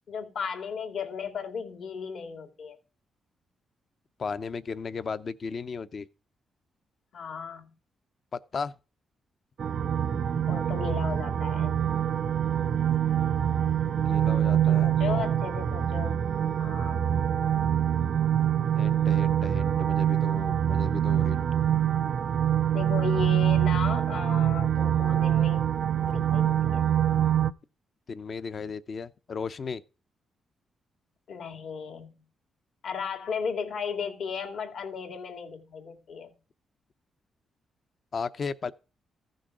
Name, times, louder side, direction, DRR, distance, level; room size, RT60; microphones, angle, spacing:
voice 1, 0.1-2.8 7.1-7.7 10.5-11.8 14.5-16.2 16.6-17.1 22.7-25.6 26.1-26.8 31.3-32.1 32.8-36.4, left 6 dB, 65° left, 2.4 m, -35 dB
voice 2, 4.2-6.1 8.3-8.7 13.8-14.9 18.7-21.4 28.1-29.8 38.1-38.7, left 5 dB, 40° left, 0.7 m, -35 dB
sound 1, 9.6-27.5, right 10 dB, 55° right, 0.6 m, -25 dB
15.0 x 6.4 x 4.9 m
cardioid pair, 125°, 0 cm